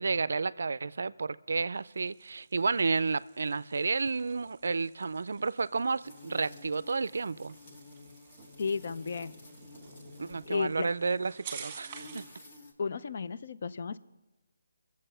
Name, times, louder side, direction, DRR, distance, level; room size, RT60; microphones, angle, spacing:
voice 1, 0.0-7.5 10.2-12.2, right 4 dB, 70° right, 0.4 m, -31 dB
sound 1, 1.7-12.4, right 7 dB, 20° right, 1.5 m, -51 dB
sound 2, 6.0-10.7 11.6-12.7, left 3 dB, 35° left, 1.6 m, -51 dB
voice 2, 8.6-9.4 10.5-10.9 12.8-14.0, left 5 dB, 50° left, 0.5 m, -33 dB
22.0 x 7.4 x 5.6 m
hypercardioid pair, 170°, 0 cm